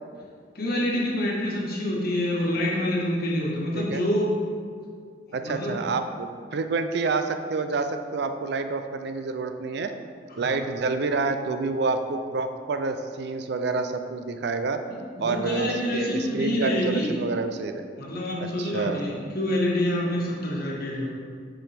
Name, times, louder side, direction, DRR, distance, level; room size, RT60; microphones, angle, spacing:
voice 1, 0.5-4.3 5.4-5.7 10.4-10.5 14.9-17.2 18.0-21.1, left 1 dB, 60° left, -4 dB, 1.4 m, -27 dB
voice 2, 5.3-9.9 10.4-14.8 15.2-17.9 18.4-19.0, right 3 dB, 65° right, 8 dB, 0.4 m, -28 dB
7.4 x 4.8 x 3.4 m, 2.1 s
head